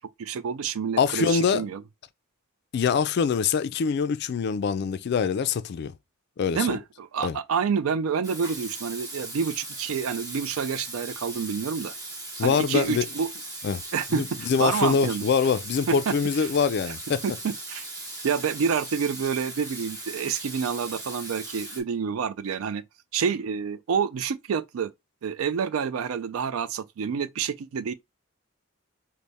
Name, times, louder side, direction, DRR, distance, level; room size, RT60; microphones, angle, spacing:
voice 1, 0.2-1.8 6.5-11.9 12.4-13.3 13.9-15.2 15.9-16.1 17.2-17.9 18.2-22.8 23.1-24.9 25.2-27.9, right 6 dB, 80° right, 0.4 m, -28 dB
voice 2, 1.0-1.7 2.7-5.9 6.4-6.8 7.2-7.4 12.4-13.0 13.6-13.8 14.1-17.2, left 6 dB, 50° left, 0.3 m, -24 dB
Water tap faucet / Sink (filling or washing), 8.2-21.8, right 2 dB, 15° right, 0.8 m, -38 dB
4.0 x 2.1 x 3.4 m
head